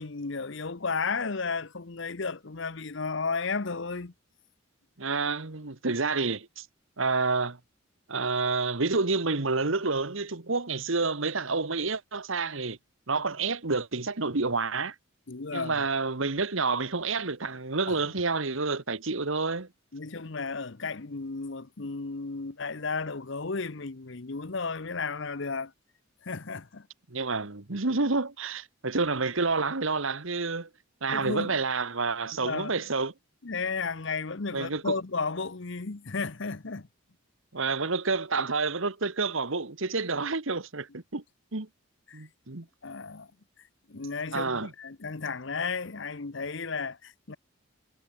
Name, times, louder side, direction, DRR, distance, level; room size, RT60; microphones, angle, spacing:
voice 1, 0.0-4.1 15.3-15.8 17.9-18.0 19.9-25.7 26.2-26.9 31.1-31.6 32.4-32.8 33.4-36.9 42.1-42.3 42.8-43.3 43.9-47.4, left 4 dB, 60° left, 0.9 m, -33 dB
voice 2, 5.0-6.6 7.0-7.6 8.1-12.8 13.1-14.9 15.5-19.7 27.1-30.7 31.0-33.1 34.5-34.9 37.5-41.2 41.5-41.7 42.1-42.6 44.3-44.7, right 4 dB, 65° right, 1.5 m, -29 dB
head